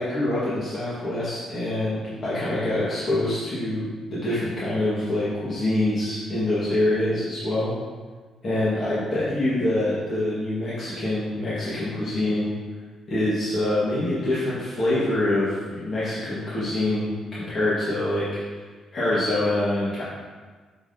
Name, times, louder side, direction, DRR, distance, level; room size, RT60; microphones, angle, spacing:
voice 1, 0.0-7.7 8.4-12.5 13.1-17.1 17.5-18.6 18.9-20.0, left 1 dB, 40° left, -10 dB, 1.7 m, -25 dB
8.8 x 3.8 x 2.8 m, 1.4 s
cardioid pair, 90°, 0 cm